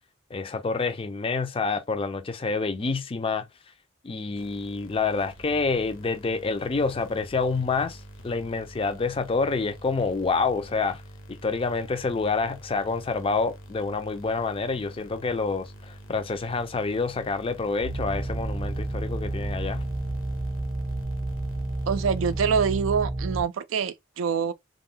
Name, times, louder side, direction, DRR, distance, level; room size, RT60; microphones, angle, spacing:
voice 1, 0.3-3.5 4.0-11.0 11.3-19.8, left 4 dB, 30° left, 0.4 m, -28 dB
sound 1, 4.4-23.1, right 1 dB, 70° left, 0.8 m, -46 dB
sound 2, 17.8-23.4, right 2 dB, 30° right, 0.7 m, -30 dB
voice 2, 21.9-24.5, right 6 dB, 75° right, 0.4 m, -25 dB
2.3 x 2.1 x 3.6 m
head